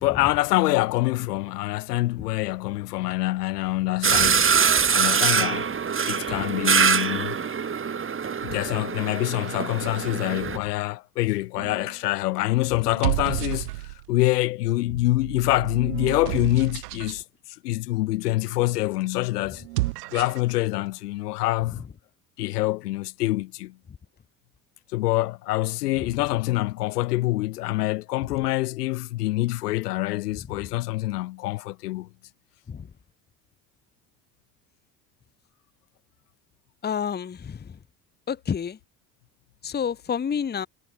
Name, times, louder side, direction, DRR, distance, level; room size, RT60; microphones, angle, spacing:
voice 1, 0.0-4.6 4.9-5.7 6.0-7.4 8.4-17.2 17.6-19.6 20.1-21.8 22.4-23.7 24.9-32.1, left 18 dB, 75° left, 1.4 m, -25 dB
sound 1, 4.0-10.6, right 6 dB, 25° right, 2.0 m, -23 dB
sound 2, 11.6-12.0 12.8-14.2 14.9-17.2 19.6-20.5, right 20 dB, 70° right, 1.1 m, -31 dB
voice 2, 36.8-37.6 38.3-38.8 39.6-40.7, left 7 dB, 20° left, 1.0 m, -28 dB
figure-of-eight pair, 60°, 48 cm